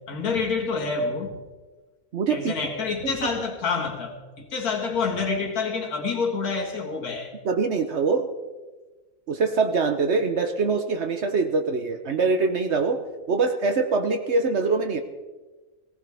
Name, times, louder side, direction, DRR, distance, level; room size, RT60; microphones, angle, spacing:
voice 1, 0.1-1.4 2.3-7.3, left 4 dB, 80° left, 1 dB, 2.2 m, -27 dB
voice 2, 2.1-2.5 3.0-3.1 7.4-8.3 9.3-13.0 13.3-15.0, right 4 dB, 55° right, 7 dB, 1.1 m, -23 dB
18.0 x 16.0 x 3.5 m, 1.2 s
omnidirectional pair, 1.5 m